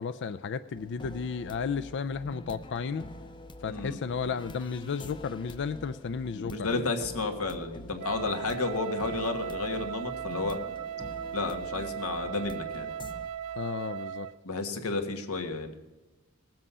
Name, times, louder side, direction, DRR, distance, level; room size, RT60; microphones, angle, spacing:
voice 1, 0.0-3.1 3.6-6.9 13.5-14.3, left 5 dB, 55° left, 13 dB, 0.4 m, -33 dB
sound 1, 0.8-13.3, left 1 dB, 20° left, 0.7 m, -46 dB
voice 2, 6.3-10.6 11.3-12.9 14.4-15.7, left 3 dB, 70° left, 5 dB, 1.6 m, -32 dB
Wind instrument woodwind instrument, 8.0-14.4, right 9 dB, 80° right, 0.4 m, -37 dB
19.0 x 7.6 x 5.6 m, 1.1 s
head